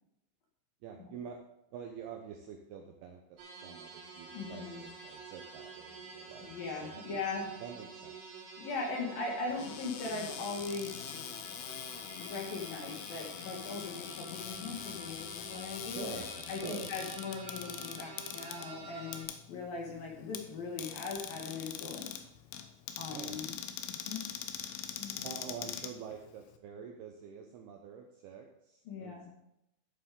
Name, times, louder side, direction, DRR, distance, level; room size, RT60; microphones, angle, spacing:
voice 1, 0.8-1.4 1.7-7.3 7.6-8.2 15.8-16.3 16.6-16.9 23.1-23.4 25.2-29.3, right 7 dB, 75° right, 2 dB, 2.4 m, -47 dB
sound 1, 3.4-19.2, right 3 dB, 60° right, 4.5 m, -49 dB
voice 2, 4.3-4.8 6.4-7.5 8.6-10.9 12.1-22.1 23.0-23.6 23.9-24.2 25.0-25.3 28.9-29.3, left 4 dB, 55° left, -1 dB, 3.1 m, -39 dB
Cupboard open or close, 9.5-26.6, left 10 dB, 85° left, 3.3 m, -43 dB
13.5 x 7.5 x 3.8 m, 0.83 s
omnidirectional pair, 5.5 m